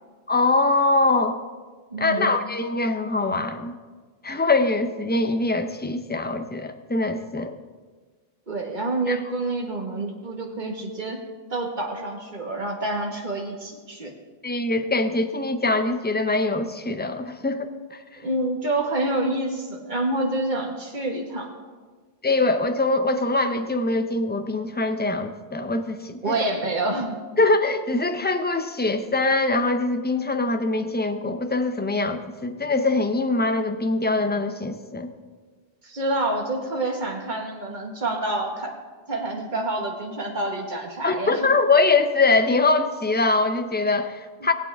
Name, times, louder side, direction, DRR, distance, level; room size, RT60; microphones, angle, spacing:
voice 1, 0.3-1.4 2.0-3.8 4.2-7.5 9.1-9.2 14.4-18.0 22.2-26.2 27.4-35.1 41.0-44.5, left 3 dB, 15° left, 7 dB, 0.5 m, -23 dB
voice 2, 1.9-2.3 8.5-11.2 11.5-14.1 18.2-21.5 26.2-27.2 35.8-38.7 39.1-41.5, right 2 dB, 50° right, 1 dB, 1.8 m, -27 dB
19.5 x 8.5 x 3.6 m, 1.4 s
omnidirectional pair, 1.1 m